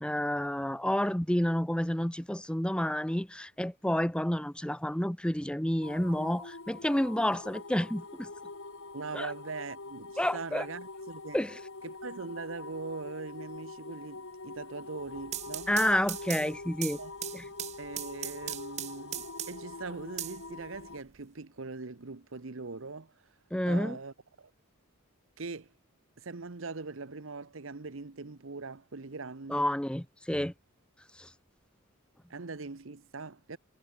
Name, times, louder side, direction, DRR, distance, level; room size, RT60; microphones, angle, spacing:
voice 1, 0.0-8.3 9.1-9.3 10.2-10.7 11.3-11.6 15.7-17.0 17.3-17.4 23.5-24.0 29.5-30.5 31.2-31.3, left 1 dB, 5° left, 0.9 m, -29 dB
sound 1, 5.8-21.0, left 3 dB, 70° left, 2.3 m, -45 dB
voice 2, 8.9-11.4 11.8-15.7 17.0-17.1 17.8-23.3 23.7-24.5 25.4-25.7 26.2-29.7 32.3-33.6, right 4 dB, 65° right, 1.0 m, -41 dB
sound 2, 15.1-19.7 20.2-21.1, right 12 dB, 30° right, 0.4 m, -39 dB
head